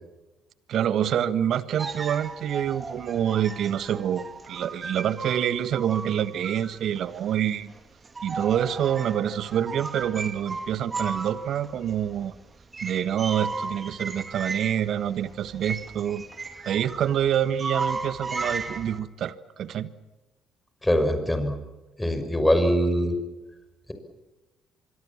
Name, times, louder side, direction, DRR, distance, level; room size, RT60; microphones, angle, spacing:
voice 1, 0.7-7.7 8.2-12.3 12.8-16.2 16.6-19.9, right 9 dB, 60° right, 15 dB, 1.4 m, -26 dB
sound 1, 1.8-7.3 7.7-19.0, right 3 dB, 30° right, 2.5 m, -36 dB
voice 2, 20.8-21.5 22.0-23.2, equal, 10° left, 7 dB, 6.0 m, -22 dB
25.0 x 23.0 x 7.3 m, 1.1 s
hypercardioid pair, 50°, 0 cm